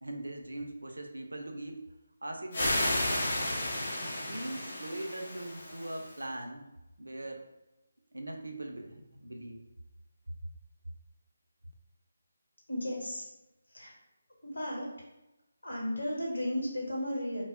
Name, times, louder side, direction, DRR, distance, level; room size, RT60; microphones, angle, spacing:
voice 1, 0.0-1.9 2.2-3.0 4.0-6.6 7.0-7.4 8.1-9.6, right 1 dB, 85° right, 3 dB, 0.4 m, -41 dB
sound 1, 2.5-6.2, left 1 dB, 50° left, 0.7 m, -33 dB
voice 2, 12.7-13.2 13.7-13.9 14.4-14.9 15.6-17.4, left 1 dB, 75° left, -3 dB, 1.1 m, -34 dB
2.1 x 2.0 x 3.5 m, 0.97 s
figure-of-eight pair, 155°, 0 cm